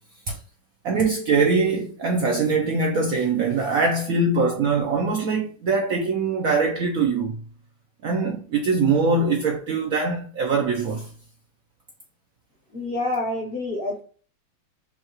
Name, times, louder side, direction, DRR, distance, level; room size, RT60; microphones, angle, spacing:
voice 1, 0.8-7.4 8.0-11.1, right 4 dB, 65° right, 0.8 m, -22 dB
voice 2, 12.7-14.0, left 2 dB, 45° left, 0.7 m, -27 dB
5.5 x 2.3 x 3.0 m
omnidirectional pair, 2.1 m